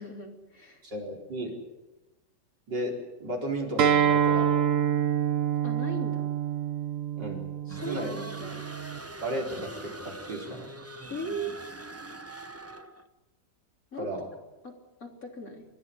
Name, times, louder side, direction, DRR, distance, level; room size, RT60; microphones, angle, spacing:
voice 1, 0.0-0.8 5.6-6.3 7.7-8.6 11.1-11.6 13.9-14.1 14.6-15.7, right 1 dB, 50° left, 1 dB, 3.9 m, -38 dB
voice 2, 0.8-1.5 2.7-4.5 7.2-8.1 9.2-10.7 14.0-14.3, right 1 dB, 75° right, 0 dB, 5.1 m, -34 dB
Acoustic guitar, 3.8-9.0, right 9 dB, 55° right, 1.2 m, -27 dB
sound 1, 7.7-13.1, right 2 dB, 15° right, 0.5 m, -43 dB
29.5 x 11.5 x 9.8 m, 1.1 s
omnidirectional pair, 1.9 m